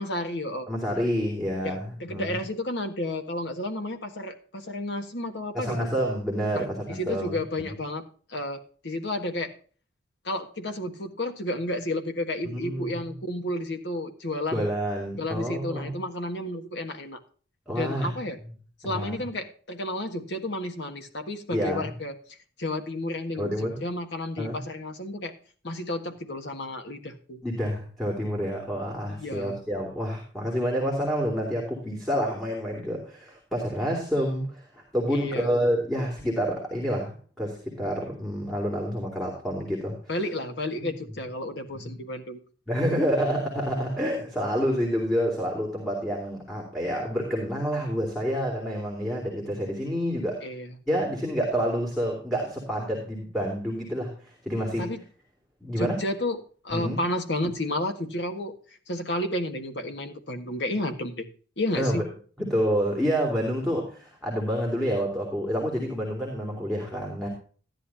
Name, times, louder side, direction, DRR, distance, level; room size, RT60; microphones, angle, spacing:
voice 1, 0.0-0.7 1.6-5.9 6.5-8.0 8.3-9.5 10.2-14.6 15.2-17.2 17.8-18.4 18.8-22.1 22.6-25.3 25.6-27.4 29.1-29.6 35.1-35.5 40.1-42.4 50.4-50.7 54.8-55.0 55.8-56.4 56.6-61.3 61.6-62.1, left 1 dB, 70° left, 6 dB, 1.6 m, -31 dB
voice 2, 0.7-2.4 5.5-7.4 12.4-13.1 14.5-16.0 17.7-18.1 18.8-19.2 21.5-21.9 23.3-23.8 24.4-24.6 27.4-40.0 40.8-40.9 41.7-41.9 42.7-50.4 50.9-54.9 55.6-56.0 56.7-57.0 61.8-62.0 62.4-67.3, equal, ahead, -2 dB, 2.7 m, -28 dB
13.5 x 10.5 x 2.8 m, 0.41 s
head